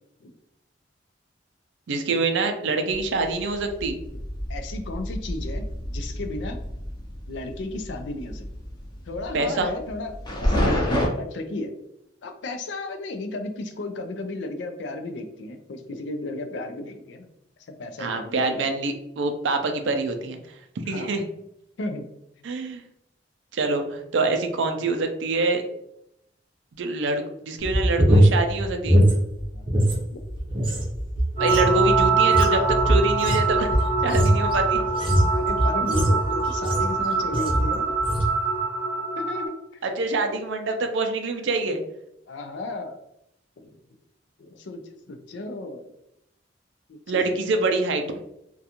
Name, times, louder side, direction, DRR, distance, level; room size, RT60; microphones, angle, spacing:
voice 1, 1.9-4.0 9.3-9.7 18.0-20.4 20.9-21.2 22.4-22.8 23.5-25.6 26.8-29.0 31.4-33.8 34.0-34.8 39.8-41.8 47.1-48.0, right 3 dB, 80° right, 5 dB, 0.4 m, -25 dB
sound 1, 3.0-11.1, equal, 25° left, 0.6 m, -29 dB
voice 2, 4.5-5.6 5.9-6.6 7.3-8.5 9.1-10.9 11.2-11.7 12.2-17.3 17.7-18.7 20.9-21.2 21.8-22.1 29.5-30.2 35.3-37.9 39.2-39.6 42.3-43.0 43.6-43.7 44.4-45.9 46.9-47.2 47.5-47.7, left 2 dB, 70° left, 6 dB, 0.4 m, -34 dB
sound 2, 27.6-30.0 30.3-37.0 37.3-37.7 38.0-38.3, right 1 dB, 30° right, 0.6 m, -21 dB
sound 3, 31.4-39.5, right 4 dB, 45° left, 0.9 m, -24 dB
2.4 x 2.3 x 2.8 m, 0.79 s
head